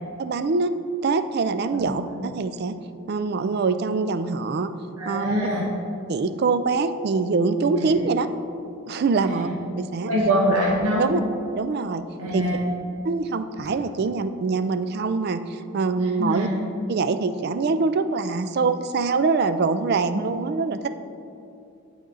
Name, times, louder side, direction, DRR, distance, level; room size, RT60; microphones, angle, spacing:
voice 1, 0.2-0.7 1.0-2.8 3.1-4.7 5.1-5.3 6.1-8.3 8.9-9.5 9.8-10.1 11.0-11.2 11.5-12.0 12.3-12.5 13.0-16.5 16.9-20.9, right 4 dB, 45° right, 10 dB, 0.3 m, -24 dB
voice 2, 5.0-5.7 7.8-7.9 9.2-9.5 10.0-11.1 12.2-12.6 16.2-16.5, equal, 80° right, -3 dB, 1.0 m, -23 dB
11.0 x 4.3 x 3.8 m, 2.7 s
head